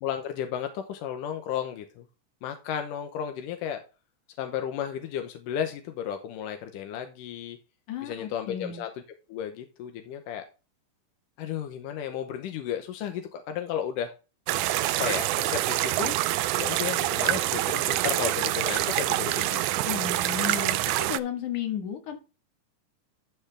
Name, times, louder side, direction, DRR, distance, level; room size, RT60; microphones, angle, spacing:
voice 1, 0.0-2.1 2.4-3.8 4.4-7.6 8.0-8.9 9.3-10.4 11.4-14.1 15.0-16.1 16.6-19.6, left 9 dB, 90° left, 6 dB, 2.6 m, -33 dB
voice 2, 7.9-8.8 19.9-22.2, left 9 dB, 70° left, 5 dB, 3.2 m, -33 dB
sound 1, 14.5-21.2, right 15 dB, 80° right, 2.0 m, -26 dB
12.5 x 5.9 x 3.4 m, 0.30 s
omnidirectional pair, 3.7 m